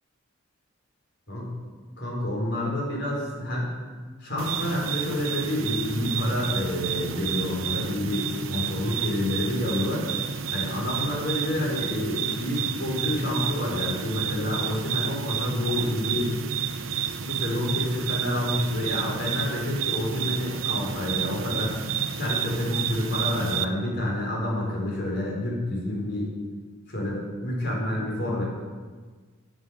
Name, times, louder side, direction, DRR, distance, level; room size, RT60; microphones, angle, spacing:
voice 1, 2.0-3.7 4.2-10.1 10.5-16.4 16.9-21.8 22.1-26.3 26.9-28.4, left 1 dB, 55° left, -3 dB, 4.6 m, -28 dB
sound 1, 4.4-23.6, right 7 dB, 85° right, 0.7 m, -30 dB
14.5 x 8.0 x 6.5 m, 1.5 s
head